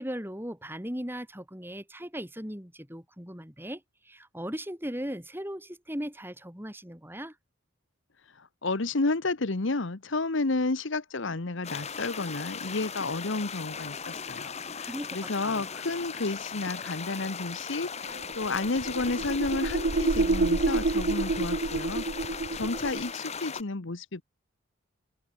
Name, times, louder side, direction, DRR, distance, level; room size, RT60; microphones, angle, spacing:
voice 1, 0.0-7.4 14.9-15.7, equal, 10° right, 5.8 m, -38 dB
voice 2, 8.4-24.2, left 3 dB, 65° left, 1.1 m, -31 dB
sound 1, 11.6-23.6, left 6 dB, 30° left, 1.3 m, -38 dB
sound 2, 18.1-23.1, right 3 dB, 50° right, 0.7 m, -28 dB
open air
head